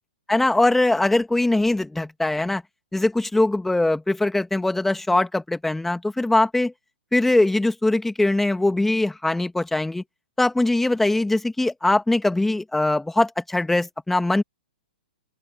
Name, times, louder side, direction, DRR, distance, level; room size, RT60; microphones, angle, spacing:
voice 1, 0.3-2.6 2.9-6.7 7.1-10.0 10.4-14.4, left 2 dB, 5° left, 2.4 m, -21 dB
open air
figure-of-eight pair, 115°, 5 cm